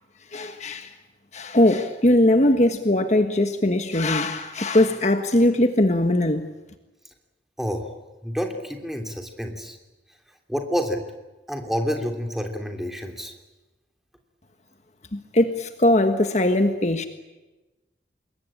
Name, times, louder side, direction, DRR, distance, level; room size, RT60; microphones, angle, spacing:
voice 1, 0.3-0.9 1.3-6.5 15.1-17.0, left 1 dB, 40° left, 7 dB, 1.4 m, -20 dB
voice 2, 7.6-9.8 10.5-11.0 11.5-13.3, equal, ahead, 3 dB, 3.1 m, -29 dB
27.0 x 22.0 x 8.7 m, 1.1 s
head